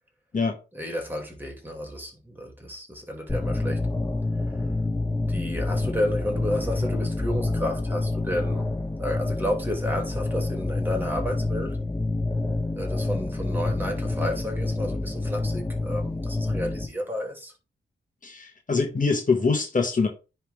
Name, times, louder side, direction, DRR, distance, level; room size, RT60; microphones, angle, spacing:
voice 1, 0.7-3.8 5.3-8.7 9.0-11.8 12.7-17.5, left 1 dB, 10° right, 2.8 m, -31 dB
sound 1, 3.3-16.8, left 2 dB, 15° left, 2.7 m, -28 dB
voice 2, 18.2-20.1, left 4 dB, 45° left, 1.4 m, -24 dB
10.0 x 3.5 x 3.5 m
cardioid pair, 75°, 19 cm